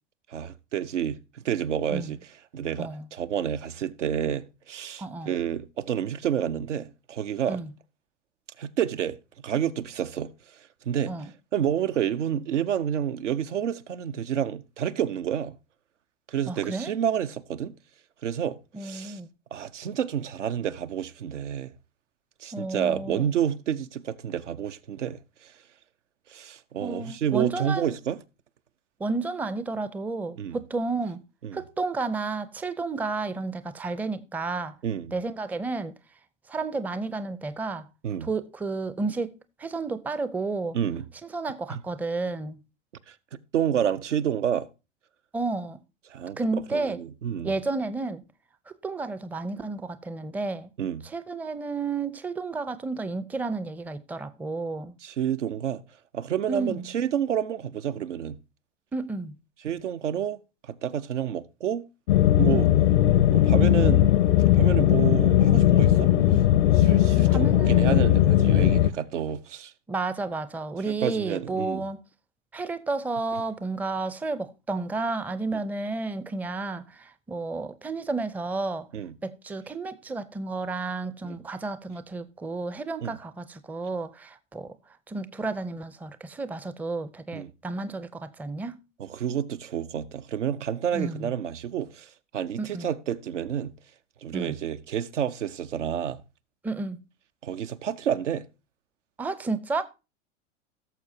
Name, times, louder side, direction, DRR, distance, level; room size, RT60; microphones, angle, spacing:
voice 1, 0.3-2.2 2.5-7.6 8.6-9.2 9.4-10.3 10.9-11.2 11.5-15.5 16.3-17.7 18.2-19.2 19.5-21.7 22.4-25.2 26.3-28.2 30.4-30.6 31.4-31.6 34.8-35.1 38.0-38.3 40.7-41.0 41.7-41.8 43.1-43.2 43.5-44.7 46.1-46.4 46.7-47.5 50.8-51.0 55.0-55.8 56.1-58.4 59.6-60.4 60.6-61.9 62.4-62.7 63.3-64.1 64.5-66.1 66.6-69.7 70.8-71.8 78.9-79.1 81.2-81.4 83.0-83.2 87.3-87.5 89.0-93.7 94.2-96.2 97.4-98.5, right 9 dB, 80° right, 0.8 m, -29 dB
voice 2, 5.0-5.3 7.5-7.7 11.1-11.3 16.5-16.9 18.7-19.3 22.5-23.3 26.8-27.9 29.0-31.2 31.5-34.8 35.1-35.9 36.5-37.9 38.2-40.8 41.2-42.6 45.3-45.8 46.4-47.0 47.4-48.2 48.7-50.7 51.0-54.9 56.5-56.9 58.9-59.3 62.5-62.7 67.3-67.9 69.9-72.0 72.5-78.9 79.2-84.8 85.1-88.7 90.9-91.3 92.6-92.9 94.3-94.6 96.6-97.0 99.2-99.8, right 3 dB, 5° right, 0.5 m, -31 dB
sound 1, 62.1-68.9, left 12 dB, 65° left, 0.7 m, -19 dB
17.0 x 6.9 x 2.7 m
hypercardioid pair, 95°, 36 cm